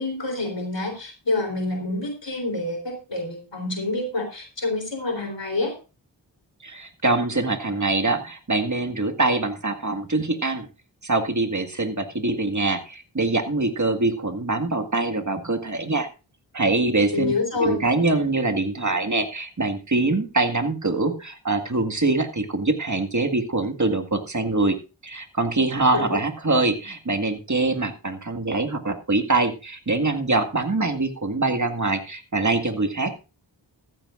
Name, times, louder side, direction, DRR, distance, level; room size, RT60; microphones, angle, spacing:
voice 1, 0.0-5.7 17.1-17.8 25.9-26.2, left 3 dB, 75° left, 4 dB, 3.7 m, -27 dB
voice 2, 6.6-10.7 11.0-16.1 16.5-17.3 17.6-24.8 25.0-33.2, right 3 dB, 40° right, 5 dB, 1.9 m, -24 dB
14.5 x 14.5 x 2.6 m, 0.32 s
wide cardioid pair, 45°, 44 cm